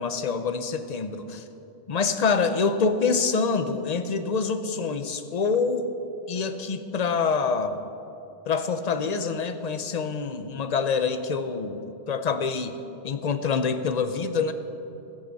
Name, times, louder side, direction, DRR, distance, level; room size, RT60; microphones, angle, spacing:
voice 1, 0.0-1.4 1.9-5.9 6.3-7.8 8.5-12.8 13.0-14.5, left 5 dB, 45° left, 9 dB, 0.7 m, -26 dB
21.0 x 8.0 x 4.1 m, 2.9 s
omnidirectional pair, 1.0 m